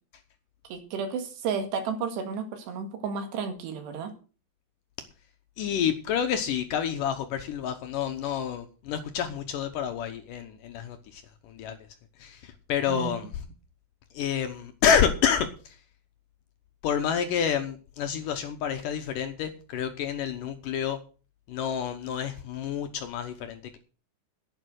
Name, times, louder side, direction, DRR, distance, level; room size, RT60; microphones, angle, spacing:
voice 1, 0.7-4.1 12.9-13.1, right 5 dB, 90° right, 6 dB, 4.0 m, -32 dB
voice 2, 5.6-11.8 12.2-13.3 14.1-15.8 16.8-21.0 21.5-23.8, left 8 dB, 70° left, 7 dB, 2.1 m, -29 dB
11.0 x 8.9 x 6.3 m, 0.37 s
omnidirectional pair, 4.7 m